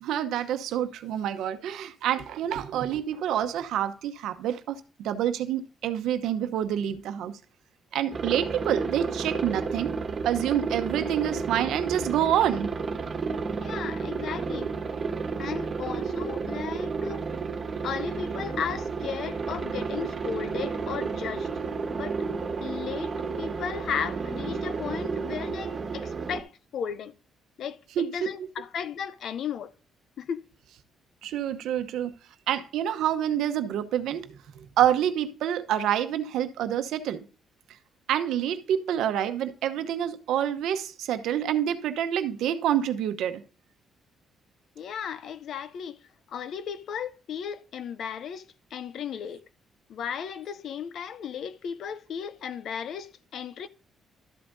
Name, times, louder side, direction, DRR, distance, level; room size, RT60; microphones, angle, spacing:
voice 1, 0.0-7.3 7.9-9.9 10.2-12.7 28.0-28.3 31.2-32.1 32.5-37.2 38.1-43.4, right 10 dB, 85° right, 0.9 m, -27 dB
Aircraft, 8.1-26.4, right 5 dB, 40° right, 1.5 m, -32 dB
voice 2, 13.6-14.7 15.4-17.3 17.8-21.5 22.0-22.2 22.6-27.2 27.6-29.7 30.2-30.4 44.8-46.0 46.3-48.4 48.7-49.4 49.9-53.7, left 7 dB, 70° left, 0.6 m, -35 dB
12.5 x 7.9 x 2.7 m
cardioid pair, 90°, 0 cm